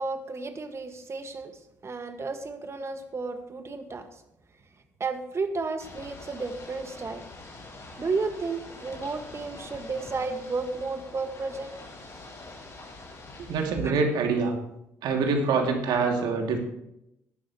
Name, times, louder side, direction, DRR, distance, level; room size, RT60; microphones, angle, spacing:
voice 1, 0.0-1.5 1.8-4.1 5.0-7.2 8.0-11.7 13.8-14.0, right 4 dB, 35° right, 7 dB, 1.9 m, -32 dB
Ocean / Boat Water vehicle, 5.8-13.7, left 2 dB, 35° left, 5.5 m, -45 dB
voice 2, 13.5-14.5 15.0-16.6, right 4 dB, 65° right, 2 dB, 2.8 m, -25 dB
17.0 x 11.5 x 3.2 m, 0.82 s
hypercardioid pair, 55°, 8 cm